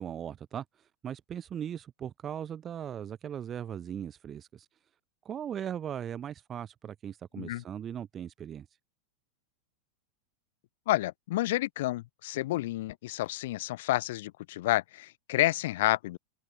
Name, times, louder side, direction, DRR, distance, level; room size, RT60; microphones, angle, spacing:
voice 1, 0.0-4.7 5.2-8.7, right 9 dB, 25° right, 0.3 m, -39 dB
voice 2, 10.9-16.2, left 17 dB, 70° left, 0.4 m, -30 dB
open air
hypercardioid pair, 125°, 0 cm